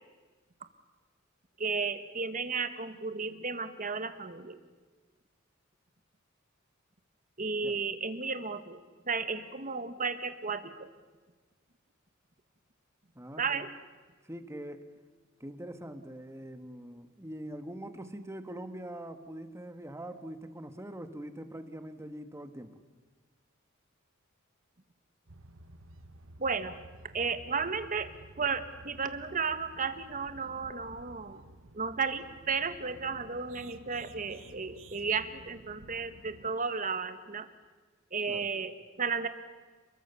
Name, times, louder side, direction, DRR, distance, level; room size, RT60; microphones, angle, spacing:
voice 1, 1.6-4.6 7.4-10.9 13.4-13.7 26.4-26.8 27.1-28.1 28.4-31.4 31.7-37.5 38.1-39.3, right 5 dB, 40° right, 10 dB, 1.7 m, -33 dB
voice 2, 13.1-13.7 14.2-14.8 15.4-22.8 38.3-38.5, right 1 dB, 15° right, 9 dB, 1.4 m, -43 dB
sound 1, 25.3-36.5, right 2 dB, 75° right, 1.4 m, -53 dB
29.5 x 22.0 x 7.1 m, 1.4 s
head